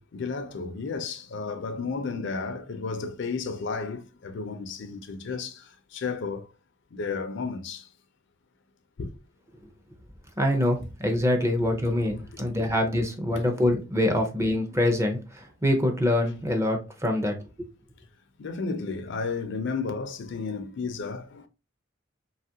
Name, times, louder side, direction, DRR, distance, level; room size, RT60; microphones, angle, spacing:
voice 1, 0.1-5.6 5.9-6.5 6.9-7.8 9.0-9.1 12.5-12.6 13.3-13.4 18.4-21.4, left 4 dB, 60° left, 0.4 m, -32 dB
voice 2, 10.4-17.4, left 1 dB, 15° right, 0.5 m, -25 dB
2.9 x 2.4 x 2.7 m
head